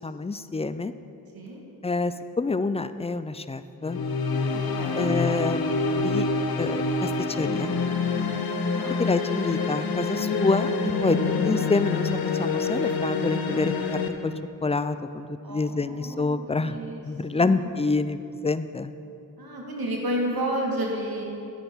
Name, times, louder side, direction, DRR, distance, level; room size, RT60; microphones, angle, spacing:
voice 1, 0.0-0.9 1.8-4.0 5.0-6.3 6.6-7.7 9.0-10.7 11.0-11.2 11.4-12.1 12.4-14.3 14.6-16.8 17.0-18.9, left 3 dB, 20° left, 12 dB, 0.3 m, -27 dB
sound 1, 3.8-14.1, left 4 dB, 75° left, 0.8 m, -26 dB
voice 2, 4.5-5.1 8.7-9.0 15.4-17.0 17.3-17.7 19.4-21.2, right 1 dB, 80° right, -1 dB, 1.6 m, -31 dB
9.8 x 8.6 x 3.6 m, 2.7 s
cardioid pair, 45°, 36 cm